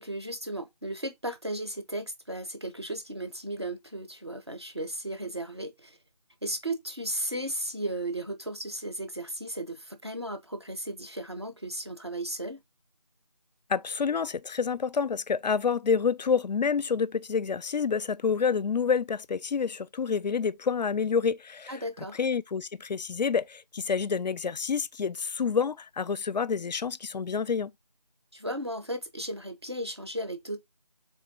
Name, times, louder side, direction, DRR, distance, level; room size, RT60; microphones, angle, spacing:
voice 1, 0.0-6.0 6.4-12.6 21.7-22.2 28.3-30.6, right 1 dB, 40° right, 0.6 m, -35 dB
voice 2, 13.7-21.8 22.2-27.7, left 6 dB, 90° left, 0.4 m, -28 dB
3.6 x 3.0 x 4.4 m
figure-of-eight pair, 180°, 21 cm